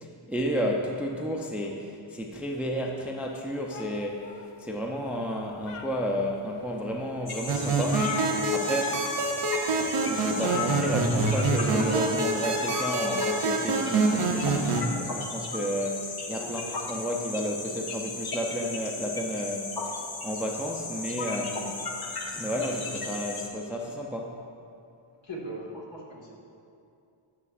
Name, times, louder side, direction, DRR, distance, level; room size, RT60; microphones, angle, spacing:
voice 1, 0.0-4.3 4.6-9.0 10.0-21.9 22.3-24.4, equal, 5° right, 1 dB, 0.5 m, -32 dB
sound 1, 3.7-4.9 5.4-6.3 6.9-7.0 7.3-7.4 7.6-9.0 9.3-9.5 10.4-11.4 12.6-13.5, left 5 dB, 85° left, 0.7 m, -37 dB
sound 2, 7.3-23.5, left 3 dB, 50° left, 0.9 m, -36 dB
sound 3, 7.5-14.8, right 3 dB, 80° right, 0.7 m, -26 dB
voice 2, 25.2-26.3, right 1 dB, 65° left, -4 dB, 1.8 m, -39 dB
10.5 x 6.7 x 2.4 m, 2.5 s
wide cardioid pair, 90°, 50 cm